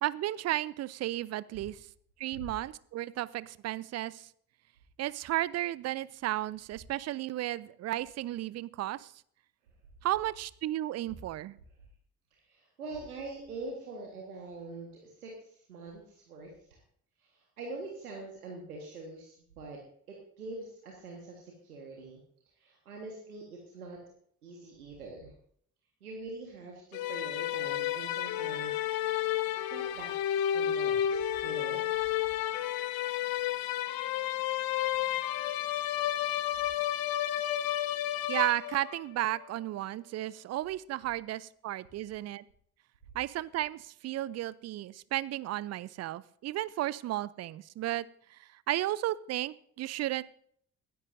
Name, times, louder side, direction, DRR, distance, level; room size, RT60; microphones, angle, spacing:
voice 1, 0.0-1.8 2.2-4.3 5.0-9.1 10.0-11.6 38.3-42.4 43.1-48.1 48.3-50.2, right 15 dB, 35° right, 20 dB, 0.5 m, -34 dB
voice 2, 12.3-16.8 17.2-19.8 20.1-22.2 22.6-24.0 24.4-25.3 26.0-29.2 29.7-31.8, right 3 dB, 80° right, 0 dB, 1.6 m, -44 dB
sound 1, 26.9-39.0, left 11 dB, 50° left, 0.8 m, -31 dB
20.5 x 10.5 x 2.6 m, 0.63 s
figure-of-eight pair, 45°, 44 cm